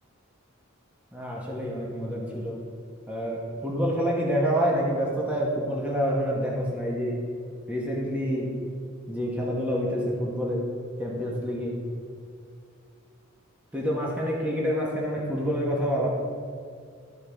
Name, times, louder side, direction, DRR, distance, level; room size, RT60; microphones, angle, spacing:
voice 1, 1.1-2.6 3.1-7.2 7.7-8.6 9.1-10.7 11.0-11.8 13.7-16.2, equal, 5° right, -4 dB, 1.1 m, -27 dB
13.0 x 4.6 x 3.4 m, 2.2 s
head